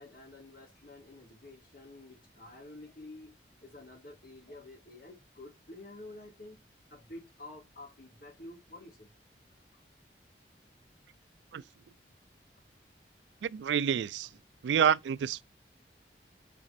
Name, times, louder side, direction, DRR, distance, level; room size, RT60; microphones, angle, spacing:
voice 1, 0.0-6.6 6.9-9.1 9.7-9.8, left 2 dB, 55° left, 2.9 m, -50 dB
voice 2, 13.4-14.3 14.6-15.4, right 8 dB, 90° right, 0.3 m, -28 dB
5.0 x 4.5 x 4.1 m
head